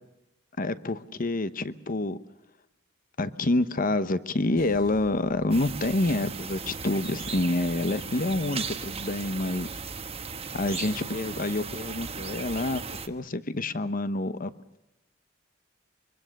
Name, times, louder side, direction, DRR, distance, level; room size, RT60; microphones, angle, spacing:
voice 1, 0.6-2.2 3.2-9.7 10.5-12.8 13.1-14.5, left 2 dB, 45° left, 13 dB, 1.0 m, -27 dB
sound 1, 4.6-8.6, left 1 dB, 75° left, 5.3 m, -52 dB
sound 2, 5.5-13.1, right 5 dB, 30° right, 1.2 m, -37 dB
25.0 x 23.5 x 6.6 m, 0.89 s
head